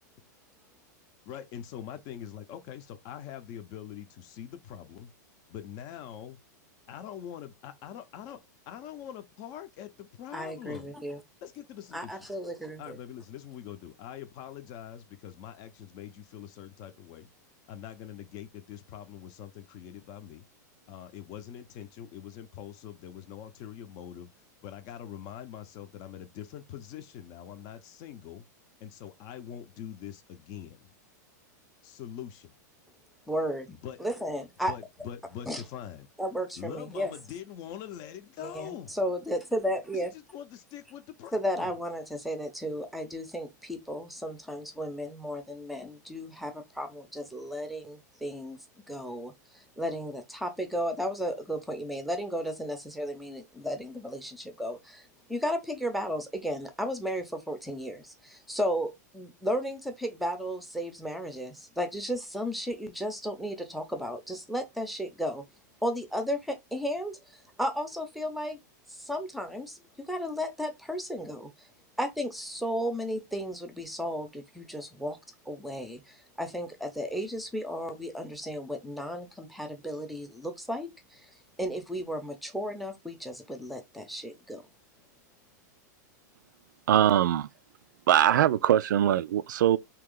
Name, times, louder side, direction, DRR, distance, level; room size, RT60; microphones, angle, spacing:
voice 1, 1.3-5.1 5.5-6.4 6.9-8.4 8.7-10.9 11.4-12.3 12.8-17.3 17.7-20.5 20.9-24.3 24.6-28.5 28.8-30.9 31.8-32.6 33.7-34.0 34.7-36.1 36.6-39.0 39.9-41.7, left 10 dB, 40° left, 0.6 m, -43 dB
voice 2, 10.3-11.2 11.9-13.0 33.3-34.7 35.5-35.6 36.2-37.1 38.4-40.1 41.3-48.6 48.9-65.4 65.8-68.6 68.9-71.7 72.0-75.2 75.5-81.3 81.6-84.6, equal, ahead, 0.7 m, -34 dB
voice 3, 86.9-87.5 88.1-89.8, right 11 dB, 85° right, 0.4 m, -22 dB
3.0 x 2.9 x 3.8 m
supercardioid pair, 145°, 10 cm